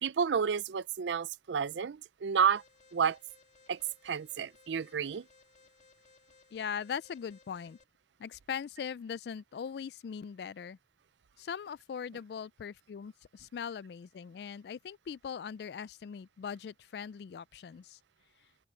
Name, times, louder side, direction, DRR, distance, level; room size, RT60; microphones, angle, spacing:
voice 1, 0.0-2.6 2.9-3.2 3.7-5.2, right 7 dB, 80° right, 0.5 m, -30 dB
Alarm, 2.5-7.8, left 4 dB, 40° left, 2.8 m, -63 dB
voice 2, 6.5-7.8 8.2-10.8 11.4-18.0, left 7 dB, 65° left, 0.3 m, -40 dB
open air
head